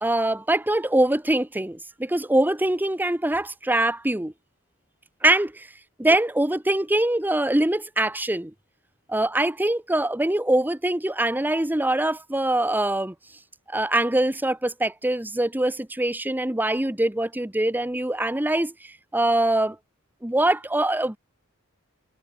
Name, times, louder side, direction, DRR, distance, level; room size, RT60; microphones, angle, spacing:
voice 1, 0.0-4.3 5.2-5.7 6.0-8.5 9.1-13.1 13.7-19.8 20.2-21.2, right 1 dB, 10° right, 0.8 m, -23 dB
head